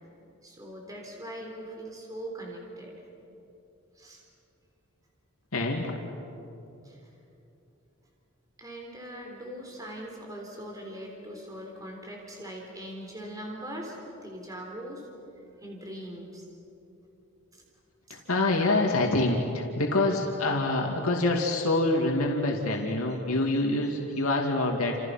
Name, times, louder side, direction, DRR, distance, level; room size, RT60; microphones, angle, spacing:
voice 1, 0.4-2.9 4.0-4.2 6.8-7.0 8.6-15.1 15.6-16.5 17.5-17.6 18.1-18.2, right 1 dB, 15° right, 0 dB, 3.7 m, -41 dB
voice 2, 5.5-5.9 18.1-25.0, left 2 dB, 80° left, 0 dB, 2.5 m, -26 dB
30.0 x 28.0 x 5.9 m, 2.9 s
head